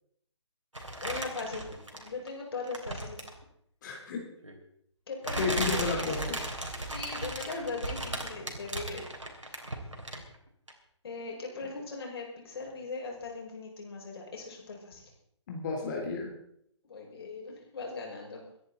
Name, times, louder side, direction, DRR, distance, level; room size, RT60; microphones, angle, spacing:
sound 1, 0.7-2.3 2.7-3.4 4.4-4.5 5.2-10.4 10.7-10.8, right 1 dB, 90° right, 3.4 m, -36 dB
voice 1, 1.0-3.3 5.1-6.3 6.9-9.6 11.0-15.1 16.9-18.4, left 3 dB, 55° left, 0 dB, 5.6 m, -39 dB
voice 2, 3.8-4.2 5.4-6.4 15.5-16.3, left 4 dB, 40° left, 0 dB, 3.5 m, -32 dB
24.5 x 10.0 x 4.1 m, 0.70 s
figure-of-eight pair, 140°, 15 cm